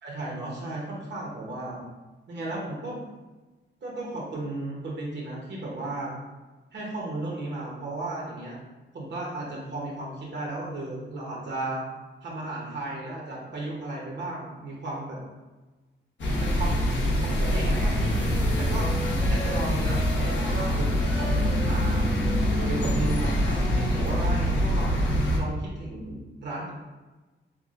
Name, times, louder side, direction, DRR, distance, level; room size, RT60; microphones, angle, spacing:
voice 1, 0.0-1.8 2.3-3.0 3.8-6.1 6.7-8.6 8.9-11.8 12.2-15.2 16.4-16.8 17.2-18.9 19.2-22.1 22.6-25.0 25.3-26.7, right 2 dB, 60° right, -3 dB, 0.9 m, -34 dB
sound 1, 16.2-25.4, equal, 65° left, 0.9 m, -24 dB
Wind instrument woodwind instrument, 17.1-24.4, equal, 15° left, 0.5 m, -41 dB
5.9 x 2.2 x 2.5 m, 1.2 s
wide cardioid pair, 145°, 20 cm